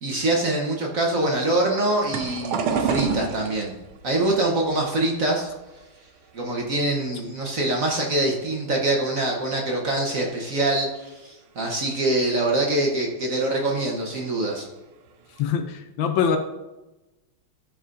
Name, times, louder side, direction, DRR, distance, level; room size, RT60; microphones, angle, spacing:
voice 1, 0.0-3.7 4.0-5.5 6.3-14.7, right 2 dB, 50° right, 0 dB, 1.2 m, -24 dB
sound 1, 1.9-7.1 7.4-8.3 8.8-9.1 9.4-9.5 10.7-10.8 11.3-11.4 12.0-12.1 12.3-12.6 13.8-14.0 14.6-14.7 15.1-15.5, right 6 dB, 85° right, 1.6 m, -30 dB
voice 2, 15.4-16.4, left 7 dB, 75° left, 7 dB, 1.4 m, -23 dB
13.0 x 4.9 x 2.5 m, 1.0 s
omnidirectional pair, 2.3 m